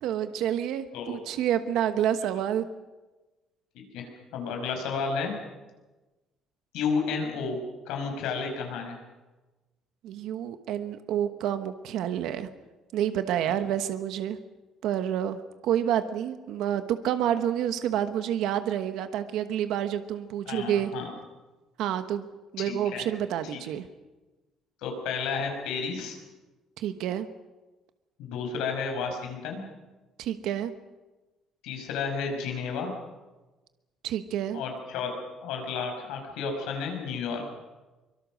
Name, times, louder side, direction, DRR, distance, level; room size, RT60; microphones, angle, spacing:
voice 1, 0.0-2.6 10.0-12.5 12.9-14.4 14.8-20.9 21.8-22.3 22.5-23.9 26.8-27.3 30.2-30.7 34.0-34.6, right 10 dB, 65° right, 9 dB, 1.2 m, -28 dB
voice 2, 3.7-5.4 6.7-7.6 7.9-9.0 20.5-21.1 22.6-23.1 23.5-23.6 24.8-26.2 28.2-29.6 31.6-32.9 34.5-35.1 35.4-37.4, left 5 dB, 85° left, 3 dB, 5.8 m, -32 dB
24.0 x 23.0 x 6.4 m, 1.2 s
cardioid pair, 180°, 0 cm